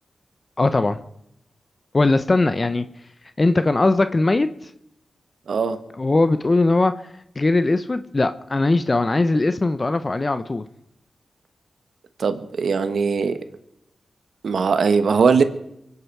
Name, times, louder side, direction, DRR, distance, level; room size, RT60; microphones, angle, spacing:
voice 1, 0.6-1.0 1.9-2.8 3.4-4.5 6.0-6.9 7.4-10.6, left 2 dB, 40° left, 11 dB, 0.9 m, -19 dB
voice 2, 5.5-5.8 12.2-13.4 14.4-15.4, right 5 dB, 75° right, 10 dB, 1.3 m, -20 dB
24.0 x 9.6 x 4.7 m, 0.78 s
cardioid pair, 45°, 0 cm